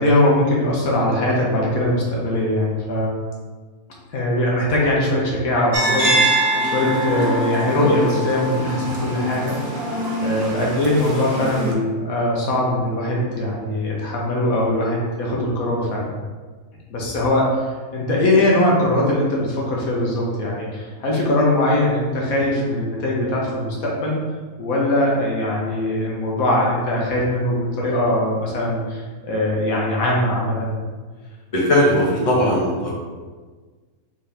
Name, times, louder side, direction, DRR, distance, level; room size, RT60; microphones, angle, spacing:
voice 1, 0.0-3.1 4.1-9.6 10.2-16.1 16.9-24.2 24.6-30.7, left 1 dB, 70° left, -3 dB, 1.3 m, -21 dB
sound 1, 5.7-11.7, right 1 dB, 50° right, 0.9 m, -23 dB
voice 2, 31.5-32.9, equal, 25° left, -5 dB, 1.0 m, -18 dB
4.3 x 3.6 x 3.3 m, 1.4 s
omnidirectional pair, 1.5 m